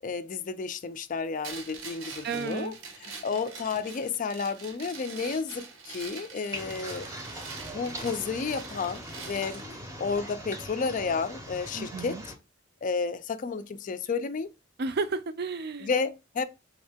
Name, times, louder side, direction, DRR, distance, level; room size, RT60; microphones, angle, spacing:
voice 1, 0.0-2.7 3.0-7.1 7.7-9.6 10.0-12.2 12.8-14.5 15.8-16.4, left 5 dB, 40° left, 0.4 m, -31 dB
sound 1, 1.4-9.7, right 5 dB, 85° right, 0.9 m, -44 dB
voice 2, 2.2-2.7 11.7-12.2 14.8-15.9, right 4 dB, 55° right, 0.5 m, -32 dB
sound 2, 6.5-12.3, right 1 dB, 15° right, 0.7 m, -41 dB
3.6 x 2.7 x 3.4 m
head